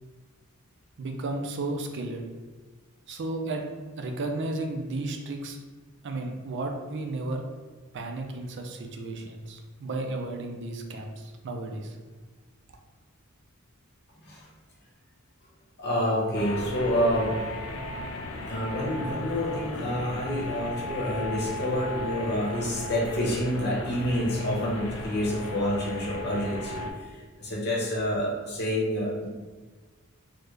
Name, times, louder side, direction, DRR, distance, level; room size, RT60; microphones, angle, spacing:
voice 1, 1.0-2.2 3.1-3.6 4.0-5.6 6.0-7.5 7.9-12.0, right 2 dB, 55° right, 3 dB, 0.4 m, -33 dB
voice 2, 15.8-17.5 18.4-27.0 27.4-29.3, equal, 50° left, -4 dB, 0.9 m, -28 dB
sound 1, 16.3-26.9, left 2 dB, 65° left, 0.4 m, -36 dB
3.7 x 2.1 x 3.2 m, 1.3 s
head